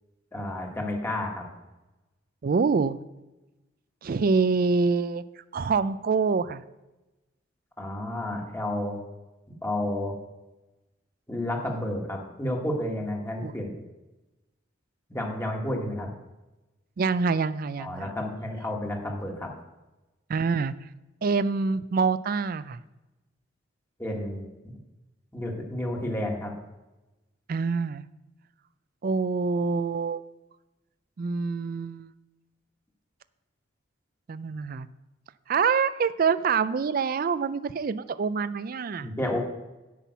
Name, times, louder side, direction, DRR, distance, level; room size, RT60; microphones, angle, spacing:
voice 1, 0.3-1.5 7.8-9.0 9.6-10.2 11.3-13.7 15.1-16.1 17.8-19.5 24.0-24.5 25.3-26.5 39.0-39.4, left 1 dB, 10° left, 0 dB, 1.6 m, -31 dB
voice 2, 2.4-3.0 4.0-5.2 5.5-6.6 13.4-13.5 17.0-18.1 20.3-20.7 21.2-22.8 27.5-28.0 29.0-30.2 31.2-32.1 34.3-34.9 35.5-39.1, right 5 dB, 45° right, 15 dB, 0.4 m, -26 dB
8.4 x 5.8 x 8.1 m, 1.0 s
head